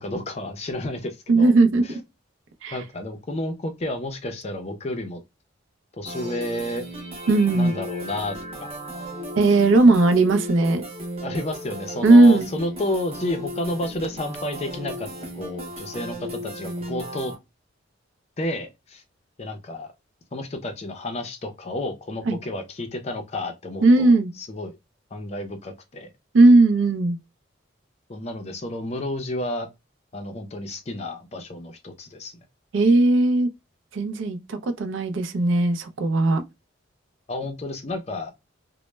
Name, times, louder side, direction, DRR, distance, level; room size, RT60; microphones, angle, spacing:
voice 1, 0.0-1.5 1.8-2.0 2.7-5.2 6.0-6.8 7.5-8.7 11.2-17.3 18.4-19.0 19.4-19.9 20.3-24.7 25.1-26.1 28.1-29.7 30.1-32.4 37.3-38.3, left 1 dB, 30° left, 0.4 m, -31 dB
voice 2, 1.3-1.9 2.6-2.8 7.3-7.7 9.4-10.8 12.0-12.5 22.3-22.4 23.8-24.3 26.3-27.2 32.7-33.5 33.9-36.4, right 2 dB, 70° right, 0.4 m, -17 dB
sound 1, 6.1-17.3, equal, 30° right, 0.6 m, -35 dB
2.1 x 2.0 x 3.1 m
head